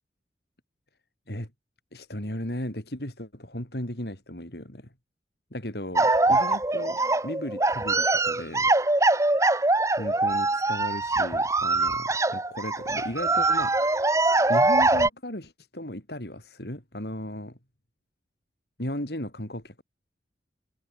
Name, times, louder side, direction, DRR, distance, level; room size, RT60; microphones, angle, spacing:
voice 1, 1.9-4.9 5.5-8.7 10.0-13.7 14.5-17.6 18.8-19.8, left 1 dB, 65° left, 5.4 m, -36 dB
sound 1, 6.0-15.1, right 2 dB, 15° right, 1.1 m, -23 dB
head